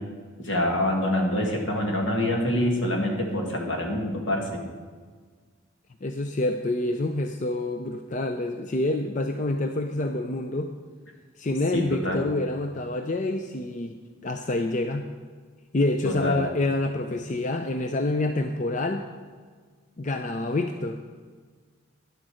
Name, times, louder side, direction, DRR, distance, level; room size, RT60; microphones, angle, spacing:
voice 1, 0.4-4.6 11.7-12.2 16.0-16.4, left 1 dB, 70° left, 1 dB, 2.1 m, -26 dB
voice 2, 6.0-10.7 11.4-14.0 14.2-15.1 15.7-19.1 20.0-21.0, left 2 dB, 40° left, 6 dB, 0.5 m, -27 dB
11.0 x 8.0 x 6.4 m, 1.5 s
head